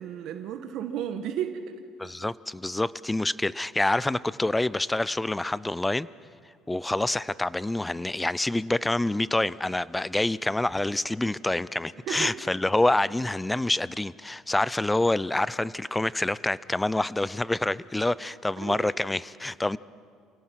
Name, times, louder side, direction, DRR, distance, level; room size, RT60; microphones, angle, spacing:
voice 1, 0.0-1.7 12.1-12.3 18.6-18.9, right 9 dB, 70° right, 7 dB, 1.2 m, -33 dB
voice 2, 2.0-6.1 6.7-19.8, left 2 dB, 10° left, 20 dB, 0.4 m, -27 dB
28.0 x 17.5 x 5.8 m, 2.1 s
cardioid pair, 105°, 0 cm